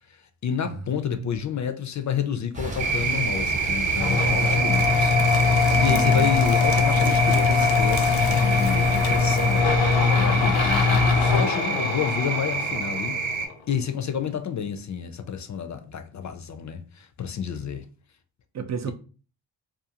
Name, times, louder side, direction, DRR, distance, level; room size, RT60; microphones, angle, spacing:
voice 1, 0.1-5.2 5.8-9.8 10.1-17.9, left 8 dB, 40° left, 0.4 m, -29 dB
Bus, 2.5-11.4, right 1 dB, 15° right, 0.8 m, -33 dB
sound 1, 2.8-13.5, right 5 dB, 80° right, 0.7 m, -27 dB
sound 2, 3.9-13.5, left 5 dB, 85° left, 0.7 m, -22 dB
voice 2, 5.7-6.3 18.5-18.9, right 8 dB, 40° right, 0.4 m, -32 dB
2.4 x 2.3 x 2.8 m
cardioid pair, 65°, 45 cm